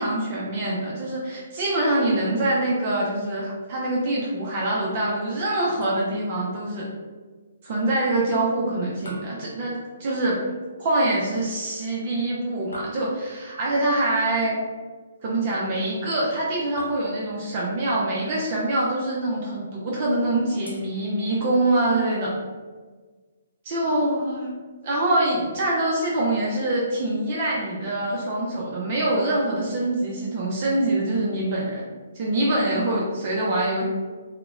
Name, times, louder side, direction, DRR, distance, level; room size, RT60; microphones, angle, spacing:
voice 1, 0.0-6.9 7.6-10.4 10.8-14.6 15.2-22.3 23.6-24.5 24.8-31.8 32.1-33.8, right 1 dB, 40° right, -4 dB, 0.4 m, -24 dB
sound 1, 5.8-6.4 9.1-10.3 12.7-13.6 16.8-17.6 20.7-21.7, equal, 75° left, 0.5 m, -44 dB
2.8 x 2.0 x 2.3 m, 1.4 s
figure-of-eight pair, 130°, 0 cm